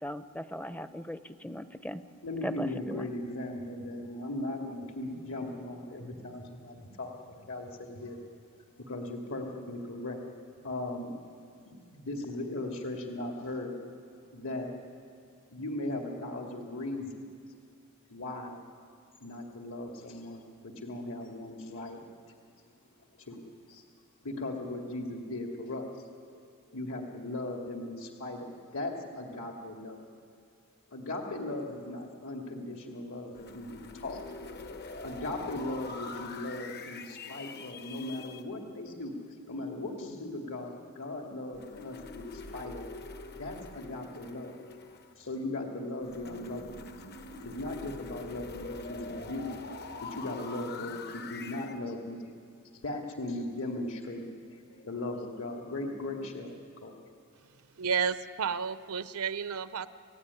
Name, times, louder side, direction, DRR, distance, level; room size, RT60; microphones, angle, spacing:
voice 1, 0.0-2.0 2.4-3.1, equal, 5° left, 11 dB, 0.7 m, -38 dB
voice 2, 2.2-8.2 8.9-10.2 10.6-11.1 11.7-13.7 14.3-14.7 15.5-17.2 18.1-18.6 19.2-22.0 23.2-23.4 23.7-23.8 24.2-26.1 26.7-30.0 30.9-34.2 35.0-39.1 39.5-42.9 43.3-44.6 45.2-46.8 47.2-49.5 50.0-52.2 52.8-54.2 54.5-56.9, left 2 dB, 65° left, 1 dB, 2.5 m, -38 dB
sound 1, 33.3-38.4 41.5-45.3 46.0-51.8, left 3 dB, 50° left, 1.2 m, -44 dB
voice 3, 57.8-59.9, right 6 dB, 75° right, 13 dB, 0.7 m, -31 dB
29.0 x 16.5 x 9.8 m, 2.3 s
head